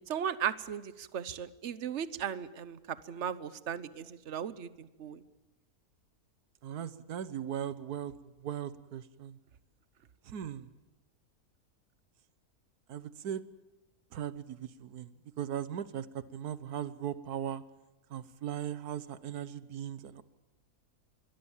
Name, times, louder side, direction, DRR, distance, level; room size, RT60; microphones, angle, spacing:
voice 1, 0.1-2.8 3.1-5.2, right 8 dB, 50° right, 15 dB, 1.2 m, -36 dB
voice 2, 6.6-8.1 8.4-9.4 10.3-10.7 12.9-13.4 14.1-15.1 15.4-17.6 18.1-20.2, right 9 dB, 80° right, 15 dB, 1.5 m, -38 dB
26.0 x 21.0 x 7.3 m, 1.0 s
omnidirectional pair, 1.6 m